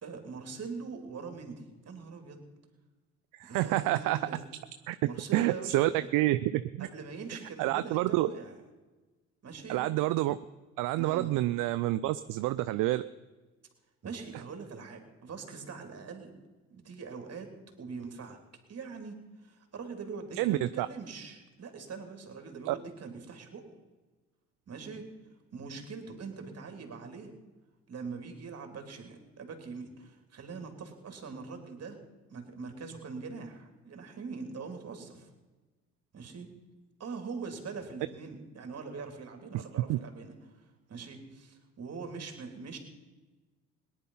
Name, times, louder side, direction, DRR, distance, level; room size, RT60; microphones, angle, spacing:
voice 1, 0.0-2.4 3.5-4.4 5.0-6.1 6.8-8.6 9.4-9.8 10.9-11.4 14.0-16.3 16.7-17.5 17.8-18.4 18.7-19.2 19.4-23.6 24.7-25.0 25.5-27.3 27.9-32.0 32.3-35.3 36.1-36.5 37.0-42.8, right 4 dB, 45° right, 5 dB, 3.0 m, -42 dB
voice 2, 3.3-4.2 4.9-5.0 5.3-6.9 7.6-8.3 9.7-10.4 10.8-13.0 20.4-20.9 22.7-22.8 39.5-39.6 39.9-40.0, right 16 dB, 70° right, 13 dB, 0.5 m, -28 dB
18.0 x 10.5 x 5.6 m, 1.2 s
supercardioid pair, 60°, 34 cm